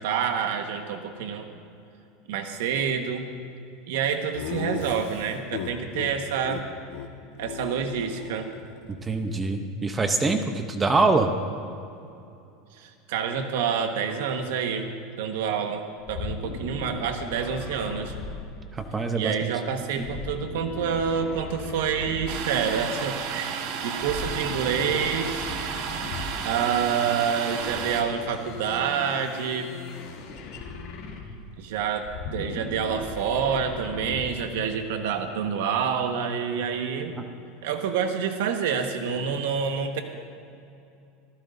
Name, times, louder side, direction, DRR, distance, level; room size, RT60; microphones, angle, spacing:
voice 1, 0.0-1.5 2.3-3.3 3.9-6.7 7.4-8.5 12.8-14.9 15.2-18.1 19.1-25.6 26.4-29.7 31.6-37.2 37.6-40.0, right 7 dB, 80° right, 5 dB, 1.4 m, -28 dB
Laughter, 4.3-6.1 6.4-6.6 6.9-7.1 7.3-8.9, left 8 dB, 85° left, 1.3 m, -36 dB
voice 2, 8.9-11.3 18.8-19.3 20.0-20.1, right 3 dB, 15° right, 7 dB, 0.7 m, -24 dB
sound 1, 16.0-19.1 20.0-22.7 24.0-26.6 27.5-31.5 32.0-34.5, left 4 dB, 55° left, 2.8 m, -38 dB
Domestic sounds home sounds, 22.3-28.0, right 7 dB, 55° right, 1.5 m, -32 dB
26.5 x 15.0 x 2.7 m, 2.6 s
supercardioid pair, 160°, 0 cm